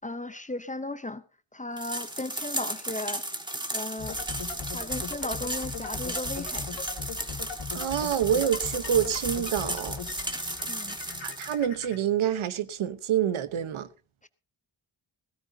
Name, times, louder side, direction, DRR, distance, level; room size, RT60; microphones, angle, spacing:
voice 1, 0.0-1.2 1.5-3.3 3.7-4.2 4.7-6.7 10.7-11.0 14.2-14.3, left 2 dB, 15° left, 0.6 m, -36 dB
sound 1, 1.8-11.6, right 1 dB, 10° right, 1.6 m, -34 dB
sound 2, 4.0-12.0, left 5 dB, 65° left, 3.0 m, -39 dB
voice 2, 7.7-10.0 11.2-13.9, right 10 dB, 80° right, 1.0 m, -27 dB
17.0 x 15.5 x 2.7 m
wide cardioid pair, 125°, 48 cm